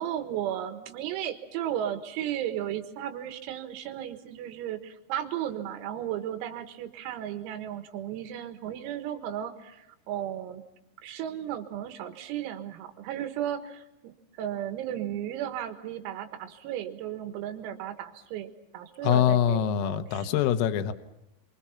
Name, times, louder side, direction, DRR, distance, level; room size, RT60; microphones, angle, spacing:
voice 1, 0.0-10.6 11.0-20.3, right 11 dB, 85° right, 7 dB, 4.3 m, -35 dB
voice 2, 19.0-20.9, left 10 dB, 80° left, 9 dB, 3.6 m, -24 dB
29.5 x 24.5 x 5.8 m, 0.89 s
omnidirectional pair, 6.0 m